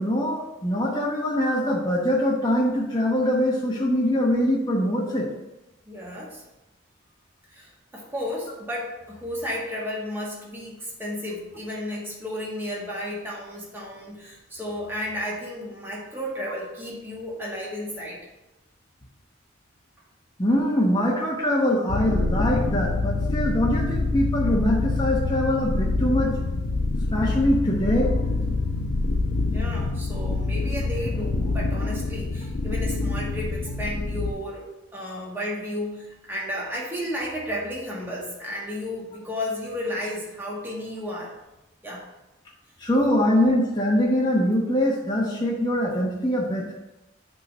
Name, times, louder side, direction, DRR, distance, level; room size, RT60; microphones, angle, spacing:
voice 1, 0.0-5.3 20.4-26.3 27.1-28.1 42.8-46.7, left 1 dB, 25° left, -4 dB, 1.0 m, -23 dB
voice 2, 5.9-6.4 7.5-18.2 29.4-34.7 34.9-41.3 41.8-42.0 43.1-43.3, left 1 dB, 10° right, -4 dB, 1.8 m, -33 dB
sound 1, 21.9-34.3, left 3 dB, 80° left, 0.7 m, -26 dB
8.2 x 3.7 x 5.3 m, 0.99 s
head